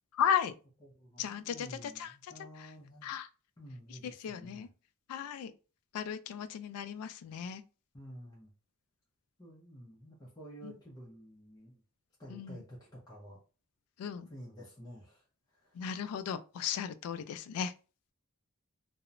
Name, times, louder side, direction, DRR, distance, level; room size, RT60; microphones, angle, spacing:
voice 1, 0.1-0.5 1.2-2.3 2.6-2.7 3.0-3.3 3.9-4.7 5.1-5.5 5.9-7.6 10.6-10.7 12.3-12.6 14.0-14.3 15.7-17.7, left 8 dB, 90° left, 0.3 m, -35 dB
voice 2, 0.8-3.1 3.6-4.7 7.9-8.5 9.4-11.8 12.2-13.4 14.3-15.2 15.5-15.8, equal, 20° left, 0.6 m, -51 dB
2.9 x 2.0 x 2.4 m
head